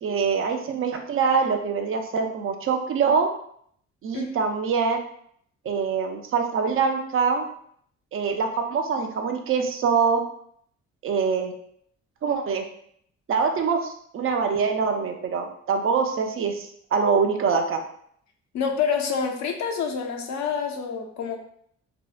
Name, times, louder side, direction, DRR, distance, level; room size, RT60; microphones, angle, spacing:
voice 1, 0.0-3.3 4.0-5.0 5.7-7.5 8.1-10.2 11.0-11.5 12.2-12.6 13.3-17.8, right 5 dB, 45° right, 4 dB, 0.4 m, -24 dB
voice 2, 18.5-21.4, left 6 dB, 65° left, 3 dB, 0.5 m, -27 dB
2.6 x 2.0 x 2.3 m, 0.65 s
cardioid pair, 90°, 30 cm